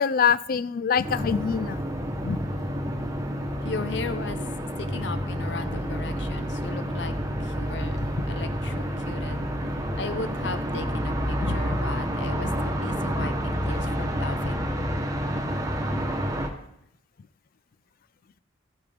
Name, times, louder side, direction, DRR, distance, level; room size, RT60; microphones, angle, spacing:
voice 1, 0.0-1.8 2.2-2.4 11.4-11.6, left 7 dB, 45° left, 17 dB, 0.3 m, -24 dB
sound 1, 1.0-16.5, equal, 15° right, 1.1 m, -29 dB
voice 2, 3.6-4.4 4.8-7.1 7.4-8.0 8.3-9.4 9.9-14.7, left 3 dB, 60° left, 11 dB, 0.8 m, -36 dB
14.5 x 8.6 x 3.5 m, 0.78 s
head